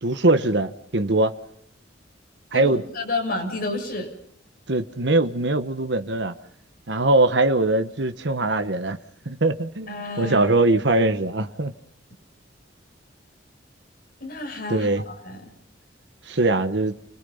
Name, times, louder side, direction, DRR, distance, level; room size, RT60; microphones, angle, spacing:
voice 1, 0.0-1.3 2.5-2.8 4.7-6.3 6.9-9.0 9.3-11.7 14.7-15.0 16.3-16.9, right 2 dB, 65° right, 1.2 m, -21 dB
voice 2, 2.5-4.1 9.9-10.5 14.2-15.5, left 2 dB, 50° left, 6.9 m, -30 dB
30.0 x 21.0 x 5.6 m
head